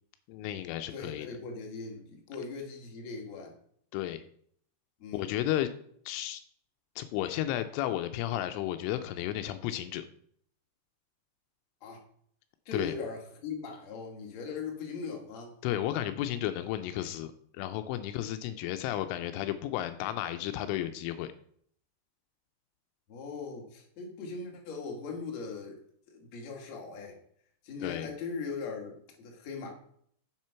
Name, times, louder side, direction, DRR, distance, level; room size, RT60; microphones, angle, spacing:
voice 1, 0.3-1.3 3.9-4.2 5.1-5.7 6.1-6.4 7.0-10.0 12.7-12.9 15.6-21.3 27.8-28.1, left 13 dB, 85° left, 9 dB, 3.1 m, -33 dB
voice 2, 0.9-3.6 5.0-5.4 11.8-12.0 12.7-15.5 23.1-25.8 26.1-27.2 27.6-29.7, left 4 dB, 45° left, 0 dB, 2.5 m, -39 dB
7.6 x 7.5 x 5.7 m, 0.63 s
omnidirectional pair, 5.7 m